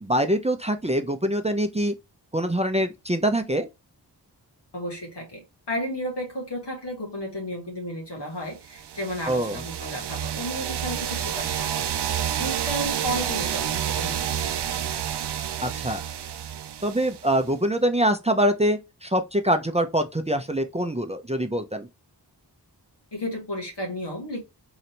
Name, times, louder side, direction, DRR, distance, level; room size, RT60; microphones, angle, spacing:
voice 1, 0.0-1.9 2.3-3.7 9.3-9.6 15.6-16.0 16.8-21.9, right 1 dB, 15° right, 0.5 m, -24 dB
voice 2, 4.7-12.0 12.4-14.9 23.1-24.4, equal, 80° left, 1.9 m, -33 dB
sound 1, 8.8-17.5, right 9 dB, 70° right, 0.5 m, -29 dB
3.9 x 2.7 x 3.2 m
wide cardioid pair, 45°, 41 cm